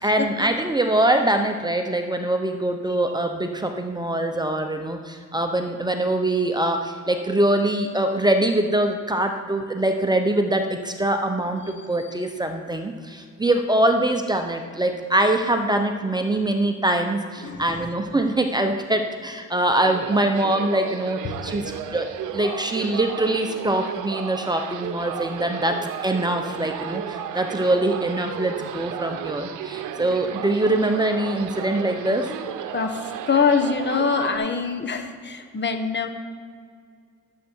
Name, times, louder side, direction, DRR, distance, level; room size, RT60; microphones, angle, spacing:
voice 1, 0.0-25.8 26.0-32.3, right 1 dB, 15° right, 5 dB, 0.9 m, -23 dB
voice 2, 11.6-12.2 17.4-17.9 21.2-21.8 32.7-36.1, left 5 dB, 35° left, 6 dB, 1.3 m, -25 dB
sound 1, 19.7-34.4, right 9 dB, 90° right, 0.7 m, -34 dB
12.5 x 7.7 x 4.6 m, 2.1 s
cardioid pair, 90°, 30 cm